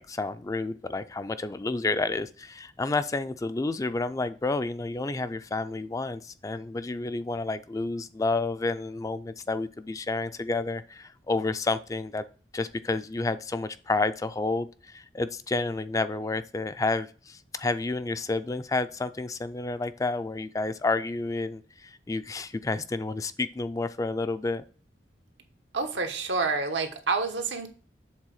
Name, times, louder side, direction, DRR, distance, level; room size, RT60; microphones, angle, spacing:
voice 1, 0.0-12.2 12.5-24.6, left 3 dB, 20° left, 12 dB, 0.3 m, -30 dB
voice 2, 25.7-27.7, right 4 dB, 90° right, 5 dB, 1.2 m, -28 dB
7.4 x 3.8 x 6.3 m, 0.38 s
head